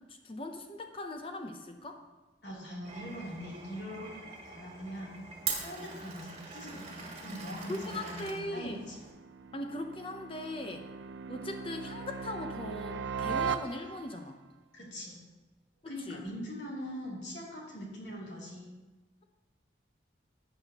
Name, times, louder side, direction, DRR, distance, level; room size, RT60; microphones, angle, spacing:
voice 1, 0.1-2.0 7.7-8.8 9.5-10.9 11.3-14.4 15.8-16.2, left 1 dB, 30° left, 5 dB, 0.7 m, -39 dB
voice 2, 2.4-5.2 5.6-9.0 10.8-10.9 14.7-15.2 15.8-18.7, equal, 75° left, -4 dB, 3.1 m, -42 dB
Glass, 2.8-9.1, right 5 dB, 35° right, 1.6 m, -42 dB
sound 1, 8.0-14.3, right 6 dB, 75° right, 0.5 m, -39 dB
12.5 x 8.8 x 3.0 m, 1.2 s
head